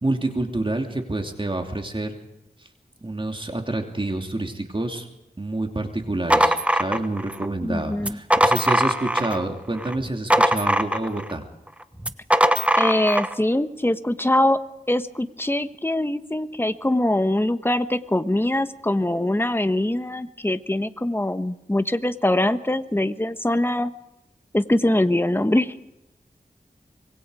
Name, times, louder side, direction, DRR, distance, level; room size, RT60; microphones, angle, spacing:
voice 1, 0.0-2.2 2.6-2.7 3.0-5.1 5.4-11.4, right 2 dB, 30° right, 4 dB, 2.8 m, -28 dB
sound 1, 6.0-7.5 8.0-9.4 9.8-11.3 12.0-13.3, equal, 10° right, 1.2 m, -21 dB
voice 2, 7.6-8.2 12.8-14.6 14.9-23.9 24.5-25.7, left 1 dB, 15° left, 10 dB, 1.2 m, -23 dB
25.5 x 22.0 x 5.0 m, 0.88 s
wide cardioid pair, 80°, 16 cm